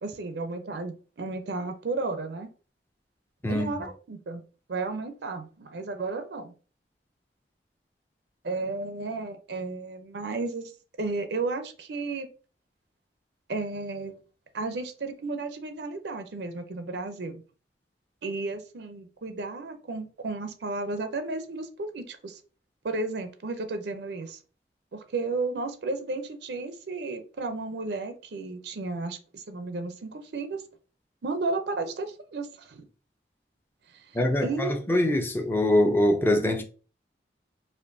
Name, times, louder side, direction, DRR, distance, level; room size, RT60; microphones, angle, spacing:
voice 1, 0.0-2.5 3.5-4.4 4.7-6.5 8.4-10.7 11.0-12.3 13.5-14.1 14.5-17.4 18.2-22.4 22.8-24.4 24.9-30.6 31.2-32.8 33.9-34.8, right 3 dB, 75° right, 0.5 m, -33 dB
voice 2, 34.1-36.6, left 1 dB, 10° left, 0.4 m, -23 dB
4.3 x 2.5 x 2.5 m
head